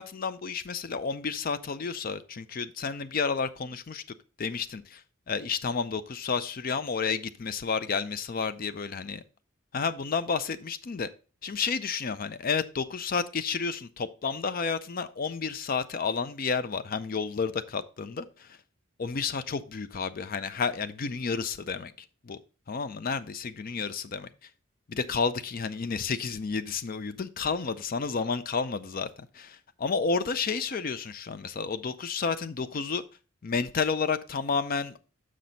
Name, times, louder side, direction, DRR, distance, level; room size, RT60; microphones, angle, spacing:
voice 1, 0.0-4.0 4.4-5.0 5.3-9.2 9.7-11.1 11.4-18.6 19.0-22.4 22.7-24.3 24.9-33.0 33.4-35.1, left 5 dB, 45° left, 0.4 m, -31 dB
6.2 x 6.0 x 3.9 m
head